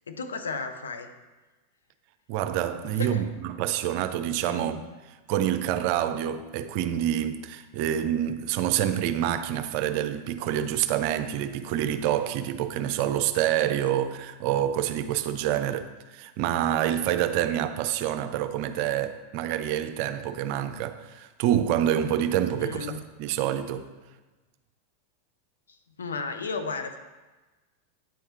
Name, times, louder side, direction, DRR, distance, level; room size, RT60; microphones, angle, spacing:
voice 1, 0.1-1.1 2.8-3.3 4.4-4.7 22.5-23.0 26.0-27.0, left 4 dB, 85° left, 0.6 m, -34 dB
voice 2, 2.3-4.8 5.3-22.9 23.2-23.9, right 11 dB, 55° right, 0.5 m, -27 dB
8.8 x 3.5 x 4.4 m
hypercardioid pair, 95°, 0 cm